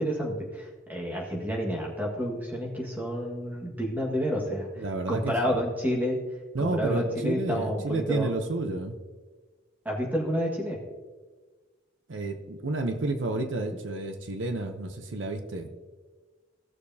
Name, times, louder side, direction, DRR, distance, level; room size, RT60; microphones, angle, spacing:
voice 1, 0.0-6.2 6.6-8.3 9.8-10.8, equal, 10° right, -2 dB, 1.6 m, -30 dB
voice 2, 4.8-5.6 6.5-9.0 12.1-15.7, right 2 dB, 80° right, 7 dB, 0.8 m, -30 dB
17.0 x 6.6 x 2.8 m, 1.4 s
head